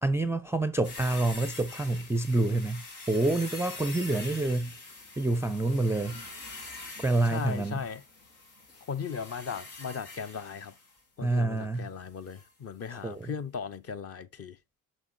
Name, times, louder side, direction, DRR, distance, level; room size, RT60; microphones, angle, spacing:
voice 1, 0.0-4.7 5.2-6.2 7.0-7.8 11.2-11.9 12.9-13.3, right 2 dB, 5° right, 0.4 m, -27 dB
sound 1, 0.8-11.0 12.3-12.5 12.8-12.9, left 3 dB, 80° left, 1.6 m, -44 dB
voice 2, 7.2-8.0 8.9-10.7 11.2-14.6, left 6 dB, 35° left, 0.7 m, -37 dB
6.2 x 6.0 x 2.6 m
figure-of-eight pair, 50°, 44 cm